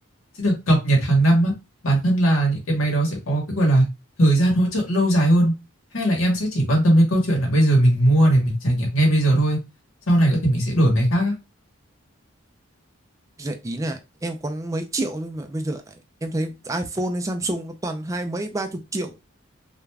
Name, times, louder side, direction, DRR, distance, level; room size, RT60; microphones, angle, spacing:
voice 1, 0.4-1.5 1.8-3.8 4.2-5.5 5.9-9.6 10.1-11.3, right 1 dB, 90° left, 0 dB, 1.1 m, -19 dB
voice 2, 13.4-19.1, right 1 dB, 15° right, 6 dB, 0.3 m, -28 dB
2.4 x 2.2 x 3.2 m, 0.25 s
head